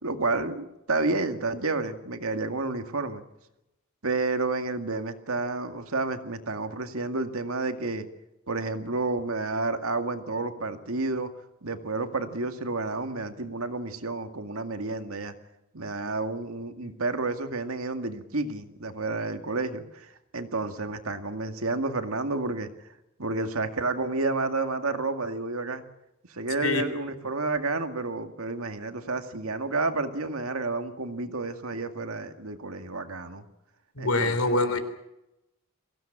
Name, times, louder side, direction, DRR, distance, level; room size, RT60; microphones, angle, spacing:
voice 1, 0.0-3.2 4.0-8.1 8.5-11.3 11.6-15.3 15.7-22.7 23.2-25.8 26.3-33.4 34.0-34.8, right 3 dB, 80° right, 7 dB, 2.1 m, -30 dB
voice 2, 34.0-34.8, left 2 dB, 90° left, 9 dB, 3.6 m, -24 dB
23.5 x 16.5 x 8.8 m, 0.91 s
head